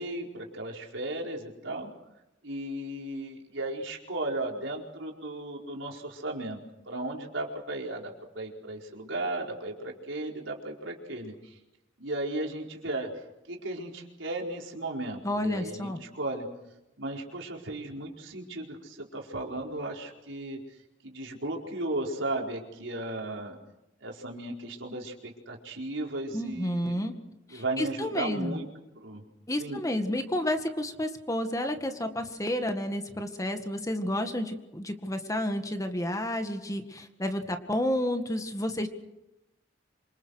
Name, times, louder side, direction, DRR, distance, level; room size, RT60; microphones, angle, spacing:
voice 1, 0.0-1.9 2.4-6.6 6.9-11.6 12.0-13.1 13.5-16.5 17.0-20.8 21.0-23.6 24.0-27.1 27.5-28.7 29.0-29.2 29.6-29.8, right 2 dB, 85° right, 0 dB, 4.6 m, -35 dB
voice 2, 15.2-16.0 26.3-27.1 27.5-28.6 29.5-38.9, left 1 dB, 20° left, 6 dB, 1.9 m, -31 dB
27.0 x 25.5 x 6.5 m, 0.94 s
head